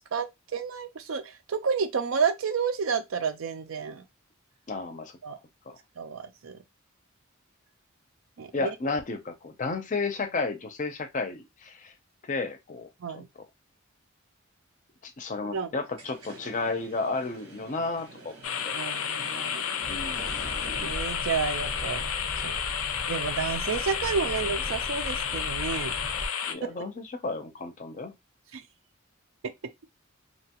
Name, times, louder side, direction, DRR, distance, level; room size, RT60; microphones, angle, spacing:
voice 1, 0.5-4.0 5.2-5.4 6.0-6.6 8.4-8.7 13.0-13.3 15.5-15.7 18.7-19.7 20.8-22.0 22.4-22.5 23.1-25.9 26.6-26.8 28.5-28.6, right 6 dB, 70° right, 0.5 m, -30 dB
voice 2, 4.7-5.2 5.7-5.8 8.5-11.9 12.3-13.2 15.0-18.3 18.6-18.7 19.9-20.3 26.4-28.1, left 3 dB, 40° left, 0.5 m, -32 dB
sound 1, 15.8-20.9, right 1 dB, 90° right, 1.2 m, -46 dB
sound 2, 18.4-26.5, left 8 dB, 90° left, 0.5 m, -31 dB
sound 3, 19.8-26.3, equal, 5° right, 0.6 m, -39 dB
2.8 x 2.3 x 2.8 m
head